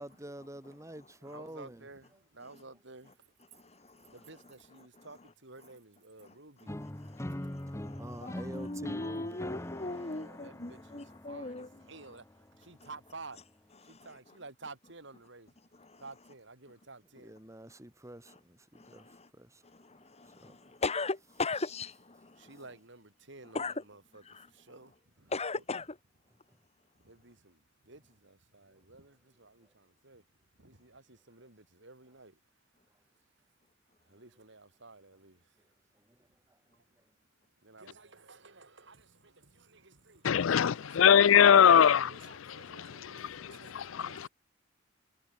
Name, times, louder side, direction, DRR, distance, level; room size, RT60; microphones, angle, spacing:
voice 1, 0.0-1.9 3.8-4.1 7.0-7.1 7.7-9.4 17.2-20.8 26.5-26.6 28.7-28.8 29.6-29.7 35.9-36.8, right 1 dB, 15° right, 2.9 m, -49 dB
voice 2, 1.2-3.2 4.1-6.8 9.8-13.4 13.8-15.6 16.0-17.3 22.4-25.6 26.9-30.2 30.5-32.4 34.0-35.7 36.7-36.9 37.6-44.3, right 3 dB, 65° right, 5.1 m, -53 dB
voice 3, 3.5-4.1 5.0-5.1 6.2-6.3 7.0-11.7 13.8-14.1 15.8-16.0 18.7-19.3 19.6-22.5 23.5-23.8 24.3-24.5 25.3-26.0, left 3 dB, 35° left, 1.8 m, -38 dB
sound 1, 6.7-12.6, left 1 dB, 15° left, 0.9 m, -43 dB
voice 4, 40.2-42.1 42.6-44.3, left 8 dB, 90° left, 0.5 m, -23 dB
head